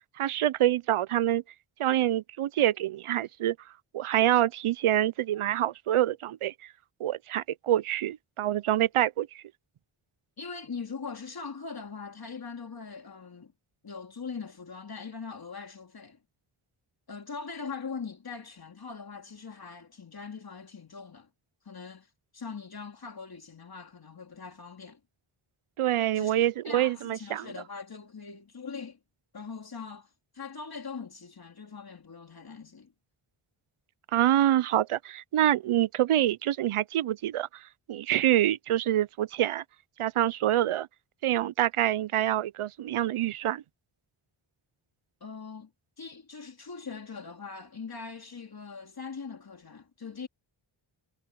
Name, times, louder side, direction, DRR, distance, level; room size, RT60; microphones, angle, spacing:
voice 1, 0.2-1.4 1.8-3.6 3.9-6.5 7.0-9.4 25.8-27.5 34.1-37.5 37.9-39.6 40.0-40.9 41.2-43.6, right 12 dB, 80° right, 0.7 m, -26 dB
voice 2, 10.4-13.5 13.8-16.2 17.1-21.3 21.6-25.0 26.1-26.4 26.6-29.0 29.3-32.9 45.2-45.7 46.0-50.3, left 5 dB, 45° left, 3.0 m, -41 dB
wide cardioid pair, 105°, 50 cm